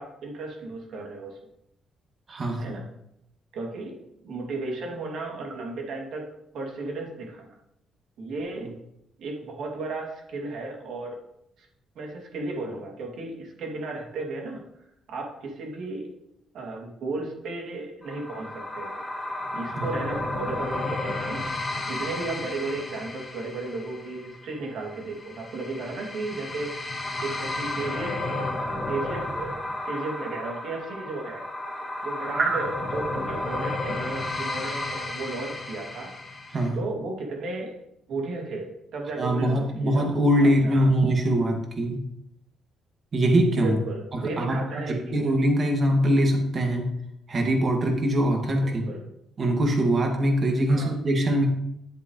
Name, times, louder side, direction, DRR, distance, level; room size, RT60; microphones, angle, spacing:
voice 1, 0.0-1.4 2.6-2.9 3.5-6.2 6.5-7.5 8.2-8.7 9.2-11.2 11.6-11.7 11.9-14.6 15.1-16.1 16.5-19.0 19.5-21.4 21.9-26.9 27.2-28.5 28.9-31.4 32.0-36.1 36.7-37.7 38.1-40.1 40.4-40.9 43.6-45.3 48.6-49.0 50.7-50.9, right 3 dB, 75° right, -1 dB, 2.6 m, -34 dB
voice 2, 2.3-2.8 19.8-19.9 32.4-32.6 36.5-36.8 39.2-42.0 43.1-43.8 44.1-44.6 44.9-46.9 47.3-48.8 49.4-51.5, right 1 dB, 40° right, 2 dB, 2.1 m, -23 dB
sound 1, 18.0-36.7, left 2 dB, 20° left, 1.9 m, -33 dB
10.0 x 7.8 x 3.2 m, 0.79 s
cardioid pair, 90°, 0 cm